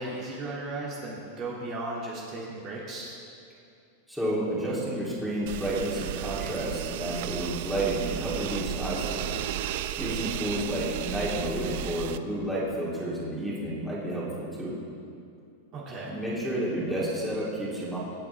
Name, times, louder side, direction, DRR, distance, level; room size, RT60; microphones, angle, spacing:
voice 1, 0.0-3.2 15.7-16.1, right 2 dB, 35° right, -5 dB, 2.2 m, -36 dB
voice 2, 4.1-9.4 10.0-14.8 16.0-18.0, right 1 dB, ahead, -8 dB, 3.0 m, -31 dB
sound 1, 5.5-12.2, right 12 dB, 55° right, 0.5 m, -34 dB
24.5 x 8.7 x 3.4 m, 2.5 s
supercardioid pair, 155°, 0 cm